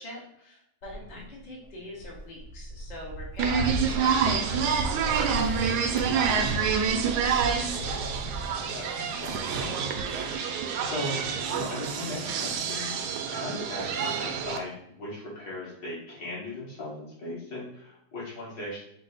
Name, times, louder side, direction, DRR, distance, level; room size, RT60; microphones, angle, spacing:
voice 1, 0.0-6.8, left 1 dB, 35° left, -3 dB, 0.7 m, -44 dB
Walk footsteps, 0.8-8.5, right 1 dB, 85° left, 1.7 m, -40 dB
sound 1, 3.4-14.6, right 6 dB, 75° right, 0.9 m, -27 dB
voice 2, 7.5-8.0 8.5-9.9 10.8-13.0 13.3-18.8, left 1 dB, 65° left, -7 dB, 2.3 m, -38 dB
5.0 x 2.1 x 4.0 m, 0.74 s
omnidirectional pair, 2.2 m